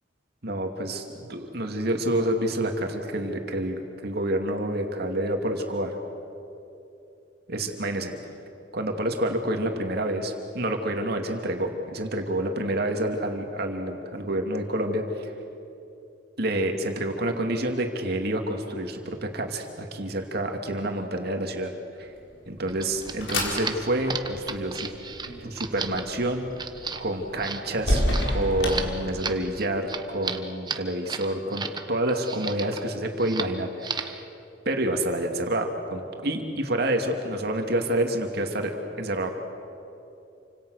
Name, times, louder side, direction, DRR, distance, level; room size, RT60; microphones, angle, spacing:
voice 1, 0.4-5.9 7.5-8.1 8.7-15.3 16.4-21.7 22.0-22.1 22.5-24.9 25.4-26.5 27.0-34.2 34.6-38.7 39.0-39.3, right 1 dB, 60° right, 4 dB, 2.6 m, -28 dB
sound 1, 22.3-29.6, left 1 dB, 90° left, 5.1 m, -31 dB
sound 2, 22.7-31.8 32.1-32.8 33.2-33.5 33.8-34.2, right 5 dB, 25° right, 1.2 m, -34 dB
29.0 x 26.0 x 6.6 m, 2.8 s
head